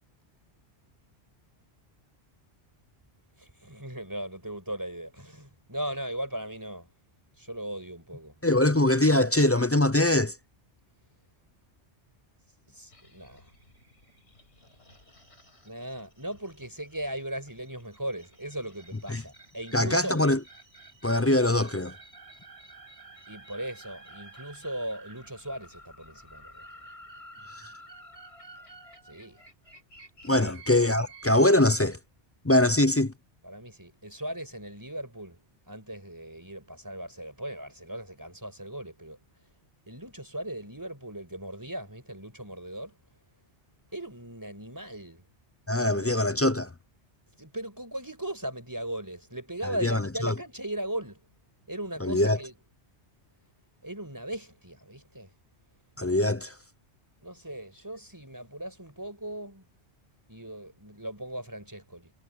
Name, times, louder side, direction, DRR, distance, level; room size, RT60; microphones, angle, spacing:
voice 1, 3.4-6.9 7.4-8.3 12.7-13.5 15.6-20.2 23.3-26.7 29.0-29.4 30.3-30.6 33.4-35.4 35.7-39.2 39.9-43.0 43.9-45.2 45.8-46.3 47.4-51.3 51.7-52.5 53.8-55.3 57.2-59.7 60.3-62.1, right 1 dB, 15° right, 5.7 m, -38 dB
voice 2, 8.4-10.3 19.1-19.2 19.7-20.4 21.0-21.9 30.2-32.0 32.4-33.1 45.7-46.7 49.6-50.3 52.0-52.4 56.0-56.5, left 1 dB, 25° left, 0.3 m, -23 dB
sound 1, 12.9-31.8, right 2 dB, 70° left, 7.0 m, -52 dB
omnidirectional pair, 1.2 m